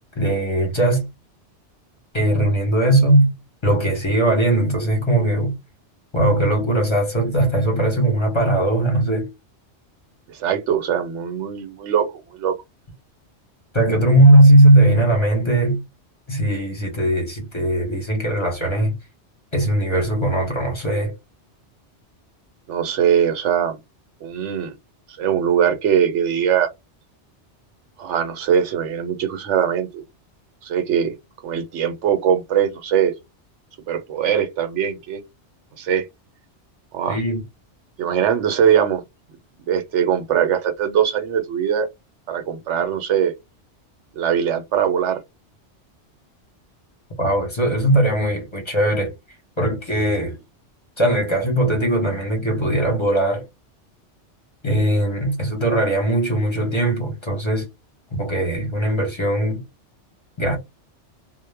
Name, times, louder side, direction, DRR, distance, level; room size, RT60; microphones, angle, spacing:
voice 1, 0.2-1.1 2.1-3.3 3.6-5.6 6.1-9.3 13.7-15.8 16.3-18.9 19.5-21.1 37.1-37.4 47.2-49.1 49.6-50.3 51.0-53.5 54.6-57.7 58.1-59.6 60.4-60.6, right 1 dB, 25° left, 0.8 m, -19 dB
voice 2, 10.3-12.5 22.7-23.8 24.2-24.7 25.2-26.7 28.0-30.0 30.6-31.1 31.4-33.1 33.9-35.2 35.8-36.1 36.9-37.2 38.0-39.0 39.7-41.9 42.3-43.3 44.1-45.2, right 8 dB, 80° right, 0.9 m, -21 dB
2.1 x 2.1 x 3.2 m
omnidirectional pair, 1.2 m